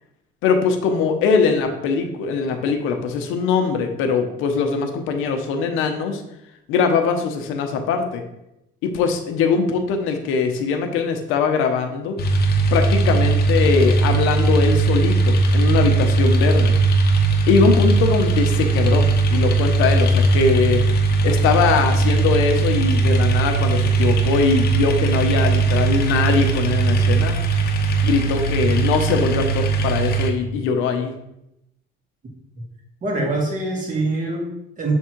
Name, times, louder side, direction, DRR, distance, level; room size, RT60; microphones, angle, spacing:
voice 1, 0.4-6.2 6.7-8.2 8.8-12.2 12.7-16.8 17.5-20.8 21.2-27.4 28.0-31.1, left 5 dB, 80° left, 5 dB, 0.9 m, -21 dB
sound 1, 12.2-30.3, right 3 dB, 50° left, 0.9 m, -19 dB
voice 2, 33.0-34.9, right 2 dB, 40° right, 0 dB, 1.9 m, -24 dB
6.3 x 3.6 x 4.5 m, 0.86 s
cardioid pair, 110°, 21 cm